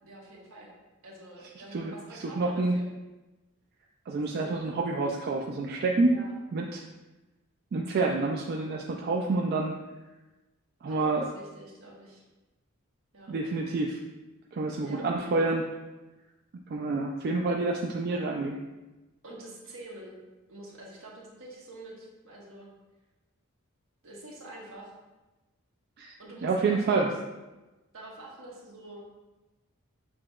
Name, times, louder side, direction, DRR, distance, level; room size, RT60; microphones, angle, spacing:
voice 1, 0.0-0.7 1.0-2.9 4.3-4.5 6.0-6.3 10.9-12.2 13.1-13.3 14.8-15.2 19.2-20.2 20.5-22.7 24.0-24.9 26.2-27.0 27.9-29.1, right 1 dB, 75° right, -3 dB, 1.1 m, -46 dB
voice 2, 2.2-2.8 4.1-6.2 6.5-6.8 7.7-9.7 10.8-11.3 13.3-14.0 14.5-15.7 16.7-18.6 26.0-26.1 26.4-27.1, right 3 dB, 50° right, 1 dB, 0.3 m, -28 dB
7.1 x 2.8 x 2.3 m, 1.1 s
head